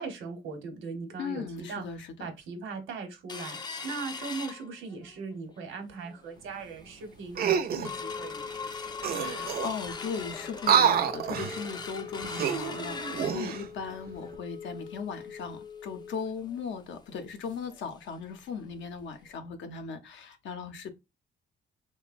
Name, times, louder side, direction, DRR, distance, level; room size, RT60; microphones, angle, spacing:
voice 1, 0.0-1.8 2.2-3.6 3.8-8.5, right 4 dB, 80° right, 0.9 m, -39 dB
voice 2, 1.2-2.3 9.1-20.9, left 5 dB, 70° left, 0.6 m, -38 dB
sound 1, 3.3-5.2 5.6-5.7 6.0-6.4 6.8-6.9 7.3-17.8 18.1-18.2 18.6-18.8 19.3-19.4, left 5 dB, 20° left, 0.3 m, -40 dB
sound 2, 7.3-7.9 8.7-8.8 9.0-9.9 10.6-11.6 12.2-13.6 14.2-14.4, right 8 dB, 50° right, 0.4 m, -27 dB
3.0 x 2.1 x 2.4 m
cardioid pair, 90°, 20 cm